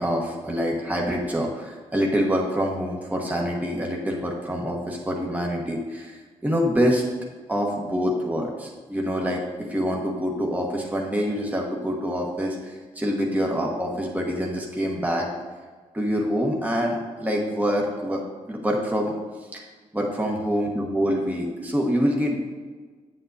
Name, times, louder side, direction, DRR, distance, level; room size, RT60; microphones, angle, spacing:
voice 1, 0.0-7.0 7.5-15.3 15.9-19.1 19.4-19.6 19.9-22.4, equal, 10° right, -1 dB, 1.3 m, -26 dB
7.7 x 7.4 x 2.7 m, 1.4 s
supercardioid pair, 50°, 15 cm